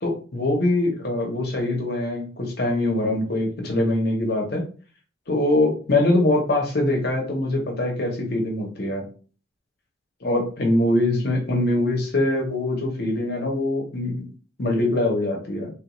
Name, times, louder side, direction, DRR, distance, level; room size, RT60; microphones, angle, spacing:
voice 1, 0.0-4.6 5.3-9.0 10.2-14.2 14.6-15.7, left 1 dB, 50° left, 1 dB, 0.8 m, -23 dB
3.4 x 2.3 x 3.0 m, 0.38 s
head